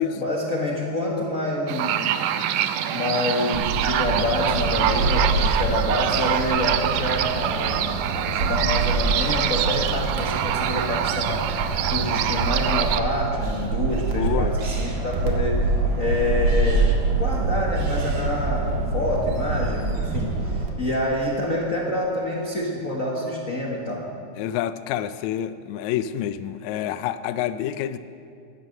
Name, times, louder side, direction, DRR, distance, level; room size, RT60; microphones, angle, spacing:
voice 1, 0.2-2.3 2.9-11.5 11.9-15.6 15.9-24.1, left 1 dB, 50° left, -2 dB, 0.9 m, -27 dB
sound 1, 1.7-13.0, right 10 dB, 85° right, 2.1 m, -25 dB
sound 2, 3.5-20.7, right 3 dB, 50° right, 2.4 m, -26 dB
voice 2, 14.2-14.5 20.8-21.0 24.4-28.0, left 11 dB, 80° left, 11 dB, 1.8 m, -27 dB
15.5 x 10.5 x 6.5 m, 2.4 s
omnidirectional pair, 3.7 m